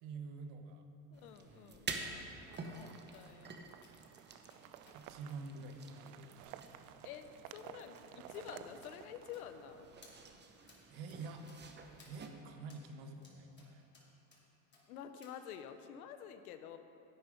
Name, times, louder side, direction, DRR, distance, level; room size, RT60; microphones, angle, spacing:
voice 1, 0.0-0.8 1.5-1.8 2.6-3.1 4.9-7.1 10.9-11.4 12.0-13.8, right 4 dB, 65° right, 6 dB, 1.2 m, -48 dB
voice 2, 1.1-1.9 2.7-3.5 7.0-9.9 14.9-16.8, left 9 dB, 90° left, 9 dB, 0.8 m, -49 dB
sound 1, 1.1-12.3, right 4 dB, 25° right, 1.0 m, -50 dB
sound 2, 2.4-10.4, right 11 dB, 90° right, 0.5 m, -55 dB
sound 3, 2.5-2.7 3.1-3.3 3.8-4.1 4.5-5.0 5.3-5.4 6.1-6.2 6.4-6.6 6.8-6.9 7.2-7.3 7.6-7.7 8.0-8.1 8.3-8.5 8.8-8.9 9.3-9.7 10.0-10.2 10.7-10.8 11.1-11.2 11.5-11.6 12.0-12.2 12.7-12.8 13.2-13.7 13.9-14.4 14.7-14.8 15.2-15.3 15.7-15.8, left 2 dB, 25° left, 2.7 m, -64 dB
10.5 x 8.1 x 5.2 m, 2.8 s
supercardioid pair, 95°, 42 cm